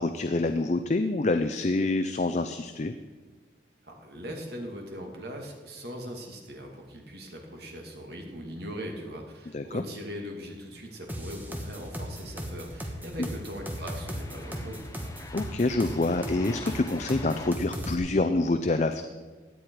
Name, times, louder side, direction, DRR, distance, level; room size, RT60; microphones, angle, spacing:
voice 1, 0.0-2.9 9.5-9.8 13.2-13.3 15.3-19.0, left 2 dB, 40° left, 8 dB, 0.5 m, -26 dB
voice 2, 3.8-14.8, equal, 60° right, 1 dB, 2.5 m, -40 dB
sound 1, 10.8-17.5, left 2 dB, 20° left, 0.9 m, -46 dB
sound 2, 11.1-17.9, equal, 10° right, 1.3 m, -36 dB
16.5 x 10.5 x 4.8 m, 1.3 s
head